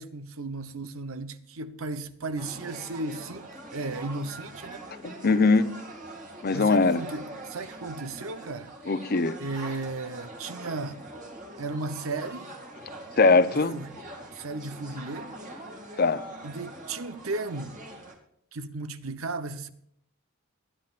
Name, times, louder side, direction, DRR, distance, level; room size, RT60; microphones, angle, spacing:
voice 1, 0.0-4.8 6.5-8.7 9.4-11.0 11.6-12.5 13.5-13.9 14.3-15.3 16.4-17.8 18.5-19.7, right 3 dB, 80° right, 0.9 m, -35 dB
sound 1, 2.4-18.2, right 1 dB, 40° right, 2.4 m, -43 dB
voice 2, 5.0-5.7 6.4-7.0 8.9-9.4 13.2-13.8 16.0-16.2, left 3 dB, 45° left, 0.7 m, -21 dB
23.0 x 10.0 x 2.5 m
head